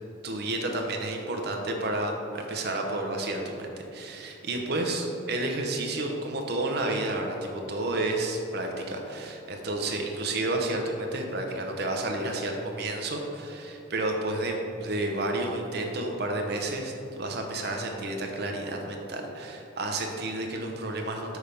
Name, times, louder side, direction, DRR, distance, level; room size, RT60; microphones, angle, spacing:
voice 1, 0.2-16.9 17.2-21.4, right 2 dB, 55° right, 2 dB, 0.7 m, -31 dB
6.3 x 3.4 x 5.1 m, 2.8 s
head